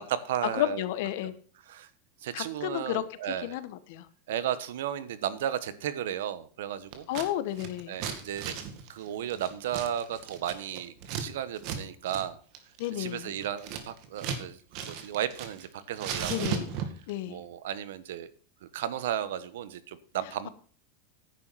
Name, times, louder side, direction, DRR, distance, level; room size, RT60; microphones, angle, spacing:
voice 1, 0.0-0.8 1.7-1.9 2.2-3.6 4.3-7.1 7.9-8.6 8.9-12.4 13.0-14.6 14.9-16.3 17.3-18.3 18.7-20.5, right 10 dB, 80° right, 15 dB, 1.2 m, -34 dB
voice 2, 0.5-1.3 2.3-3.0 3.4-4.1 7.1-8.0 12.8-13.3 16.3-16.8 17.1-17.4, left 13 dB, 65° left, 13 dB, 1.3 m, -32 dB
Scissors, 6.9-7.3 7.5-11.2 11.6-11.8 12.1-12.2 12.5-14.4 14.7-15.7 15.9-17.1, right 8 dB, 50° right, 2.2 m, -36 dB
10.5 x 9.1 x 4.2 m, 0.43 s
supercardioid pair, 145°, 0 cm